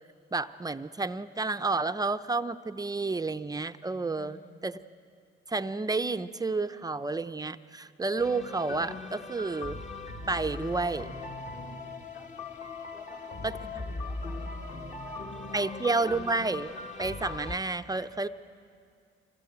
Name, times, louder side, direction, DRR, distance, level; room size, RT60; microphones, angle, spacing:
voice 1, 0.3-4.4 4.6-4.7 5.5-9.8 10.3-11.1 13.4-13.5 15.5-16.7 17.0-18.3, right 3 dB, 20° right, 10 dB, 0.6 m, -30 dB
voice 2, 4.1-4.7 12.1-12.4 12.9-15.8, left 2 dB, 90° left, 2 dB, 4.0 m, -53 dB
sound 1, 8.2-17.6, left 3 dB, 40° left, 1.7 m, -39 dB
25.0 x 21.0 x 8.0 m, 2.3 s
cardioid pair, 90°, 20 cm